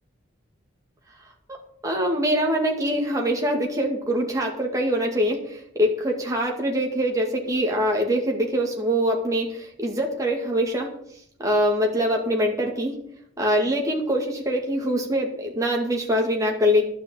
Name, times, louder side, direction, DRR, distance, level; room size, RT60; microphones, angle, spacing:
voice 1, 1.8-10.9 11.4-13.0 13.4-16.8, equal, 15° right, 0 dB, 2.2 m, -24 dB
12.0 x 5.8 x 8.7 m, 0.70 s
head